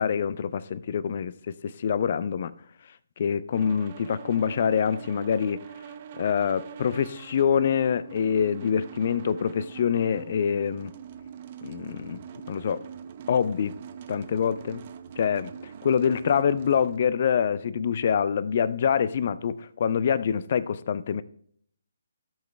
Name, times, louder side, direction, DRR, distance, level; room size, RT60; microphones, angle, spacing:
voice 1, 0.0-2.5 3.2-5.6 6.2-10.9 11.6-12.2 12.5-12.8 13.3-13.8 14.1-14.8 15.2-21.2, left 7 dB, 40° left, 0.5 m, -25 dB
sound 1, 3.5-17.0, right 8 dB, 35° right, 0.7 m, -43 dB
16.0 x 5.9 x 3.3 m
figure-of-eight pair, 140°, 0 cm